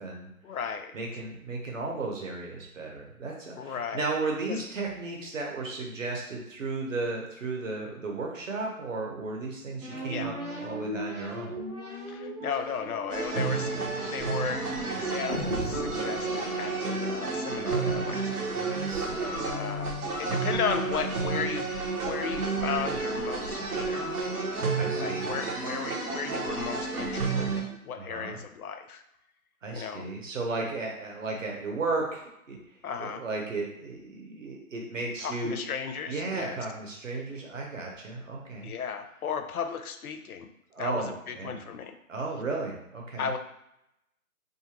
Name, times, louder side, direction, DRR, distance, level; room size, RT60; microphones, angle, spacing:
voice 1, 0.4-1.0 3.6-4.0 4.5-4.6 10.1-10.3 12.1-18.5 19.2-24.1 24.9-29.0 29.7-30.1 32.8-33.2 35.2-36.6 38.6-40.5 40.8-42.0 43.2-43.4, left 6 dB, 75° left, 7 dB, 0.5 m, -35 dB
voice 2, 0.9-11.6 18.5-19.3 24.8-25.3 28.0-28.4 29.6-32.6 33.0-35.6 36.1-38.7 40.7-41.6 42.1-43.3, right 3 dB, 60° right, 0 dB, 0.9 m, -34 dB
sound 1, 9.8-17.3, equal, 30° right, 0.7 m, -38 dB
sound 2, 13.1-27.6, right 4 dB, 85° right, 0.9 m, -31 dB
2.5 x 2.4 x 2.9 m, 0.82 s
hypercardioid pair, 165°, 44 cm